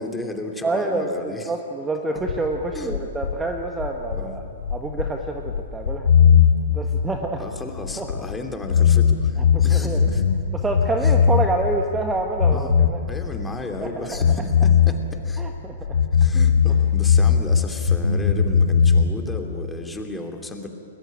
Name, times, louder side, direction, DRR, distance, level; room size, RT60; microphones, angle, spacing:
voice 1, 0.0-1.5 2.7-3.0 4.1-4.4 7.4-10.2 11.0-11.1 12.5-12.8 13.1-15.5 16.1-20.7, left 2 dB, 10° left, 4 dB, 2.9 m, -34 dB
voice 2, 0.6-4.4 4.7-6.1 6.7-7.4 8.0-8.1 9.4-10.1 10.6-13.0 13.8-14.2 15.4-16.0 16.7-16.8, right 2 dB, 10° right, 3 dB, 1.6 m, -27 dB
sound 1, 2.2-8.4 8.6-11.7 12.0-13.9 14.1-17.6 17.9-19.1, left 7 dB, 65° left, 2.6 m, -18 dB
30.0 x 21.0 x 8.9 m, 2.7 s
figure-of-eight pair, 110°, 0 cm